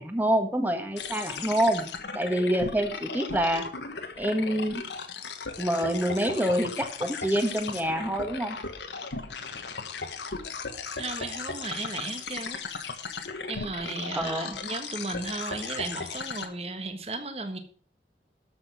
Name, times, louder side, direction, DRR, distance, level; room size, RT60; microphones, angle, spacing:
voice 1, 0.0-3.7 4.2-4.8 5.6-8.6 14.1-14.6, right 1 dB, 10° right, 1.5 m, -27 dB
sound 1, 1.0-16.5, left 4 dB, 85° left, 1.4 m, -37 dB
voice 2, 10.9-12.6 13.5-17.6, right 3 dB, 35° right, 1.4 m, -35 dB
13.0 x 6.3 x 6.1 m
head